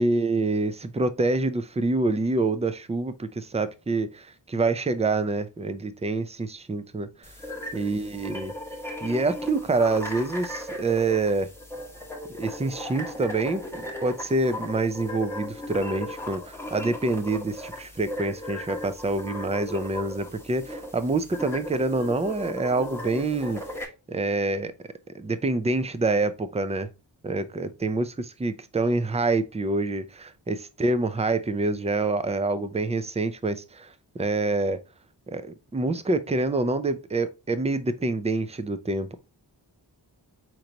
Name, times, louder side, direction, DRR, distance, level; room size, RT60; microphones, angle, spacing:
voice 1, 0.0-7.3 7.7-8.5 9.0-11.5 12.4-23.6 24.1-24.7 25.1-26.9 27.2-34.8 35.3-39.2, right 3 dB, 15° right, 0.4 m, -26 dB
sound 1, 7.2-23.8, left 1 dB, 5° left, 0.9 m, -37 dB
4.5 x 3.9 x 2.8 m
wide cardioid pair, 85°, 44 cm